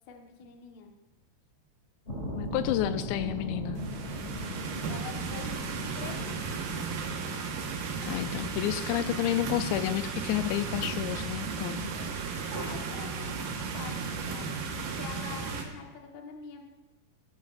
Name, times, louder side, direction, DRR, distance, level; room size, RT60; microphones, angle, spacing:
voice 1, 0.1-0.9 4.9-5.6 6.0-6.3 11.9-12.1 12.5-13.3 13.7-14.5 14.8-16.6, left 6 dB, 60° left, 2 dB, 2.1 m, -44 dB
sound 1, 2.1-7.7, equal, 25° left, 1.8 m, -38 dB
voice 2, 2.3-3.8 8.1-11.9, left 14 dB, 85° left, 11 dB, 2.7 m, -30 dB
sound 2, 3.8-15.6, right 5 dB, 65° right, 2.7 m, -35 dB
19.5 x 14.5 x 2.5 m, 1.0 s
omnidirectional pair, 5.0 m